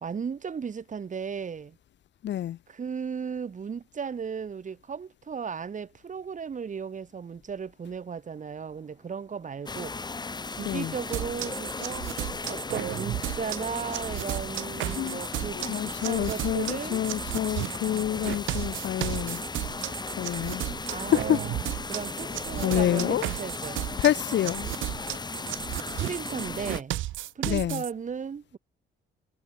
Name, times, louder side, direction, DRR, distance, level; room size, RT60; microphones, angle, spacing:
voice 1, 0.0-1.8 2.7-9.9 10.5-12.1 12.5-17.0 20.9-21.6 21.9-23.8 25.9-27.0 27.4-28.6, right 6 dB, 40° right, 1.9 m, -35 dB
voice 2, 2.2-2.6 10.6-10.9 14.9-15.2 15.6-19.4 20.2-20.6 21.0-21.4 22.6-23.3 24.0-24.6 27.4-27.8, left 11 dB, 65° left, 1.0 m, -27 dB
sound 1, 8.2-18.8, right 3 dB, 25° right, 7.8 m, -62 dB
sound 2, 9.7-26.8, left 3 dB, 20° left, 1.3 m, -36 dB
sound 3, 11.1-27.9, right 15 dB, 80° right, 0.7 m, -34 dB
cardioid pair, 90°, 20 cm